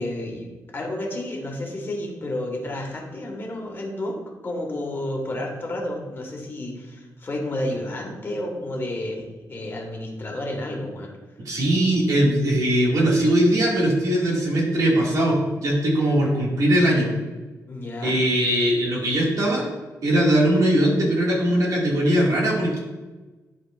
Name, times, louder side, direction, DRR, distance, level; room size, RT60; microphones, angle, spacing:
voice 1, 0.0-4.2 4.4-11.1 17.7-18.2, left 1 dB, 35° left, 0 dB, 1.7 m, -31 dB
voice 2, 11.5-17.1 18.0-19.7 20.0-22.8, right 1 dB, 60° right, -3 dB, 2.2 m, -20 dB
11.0 x 4.4 x 2.5 m, 1.2 s
cardioid pair, 105°, 7 cm